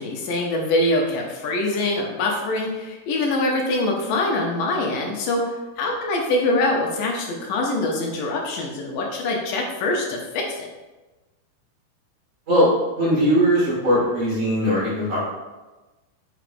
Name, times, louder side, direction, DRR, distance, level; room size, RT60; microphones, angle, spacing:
voice 1, 0.0-10.7, left 2 dB, 75° left, 0 dB, 2.3 m, -24 dB
voice 2, 12.9-15.3, equal, 45° right, -8 dB, 1.0 m, -20 dB
5.8 x 3.5 x 2.5 m, 1.1 s
omnidirectional pair, 4.0 m